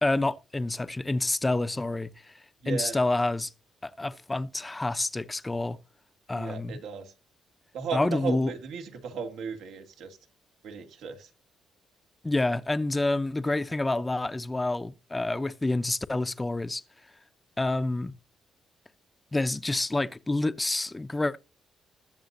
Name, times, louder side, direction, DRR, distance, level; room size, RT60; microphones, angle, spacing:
voice 1, 0.0-2.3 2.7-3.5 3.8-5.8 6.3-6.8 7.9-8.5 12.2-16.8 17.6-18.1 19.3-21.4, left 2 dB, 15° left, 0.6 m, -28 dB
voice 2, 2.6-3.0 6.3-7.1 7.7-10.2 10.6-11.3, right 5 dB, 85° right, 2.3 m, -35 dB
20.5 x 6.9 x 2.7 m
cardioid pair, 90°, 0 cm